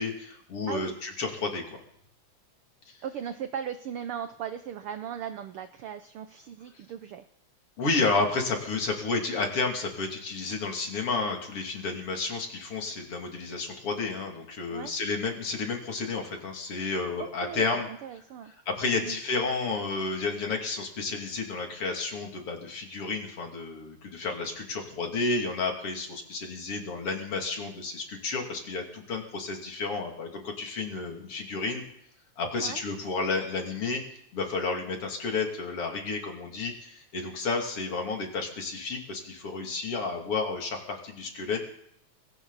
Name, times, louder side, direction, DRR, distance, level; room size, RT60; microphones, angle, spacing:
voice 1, 0.0-1.8 7.8-17.9 18.7-31.8 32.4-34.0 34.3-41.6, left 3 dB, 50° left, 2 dB, 3.5 m, -31 dB
voice 2, 0.7-1.0 3.0-7.3 14.7-14.9 17.2-18.6 19.0-19.2 32.6-32.8, right 8 dB, 75° right, 10 dB, 1.3 m, -38 dB
20.5 x 17.5 x 4.1 m, 0.71 s
omnidirectional pair, 3.3 m